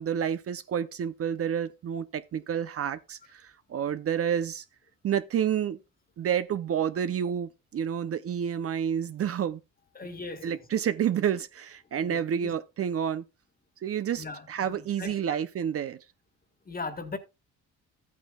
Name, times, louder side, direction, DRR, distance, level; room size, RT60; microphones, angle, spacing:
voice 1, 0.0-4.6 5.0-5.8 6.2-9.6 10.4-13.2 13.8-16.0, right 8 dB, 50° right, 0.6 m, -29 dB
voice 2, 9.9-10.6 12.0-12.5 14.2-15.4 16.6-17.2, left 3 dB, 30° left, 1.6 m, -39 dB
13.0 x 8.4 x 2.3 m
cardioid pair, 90°, 30 cm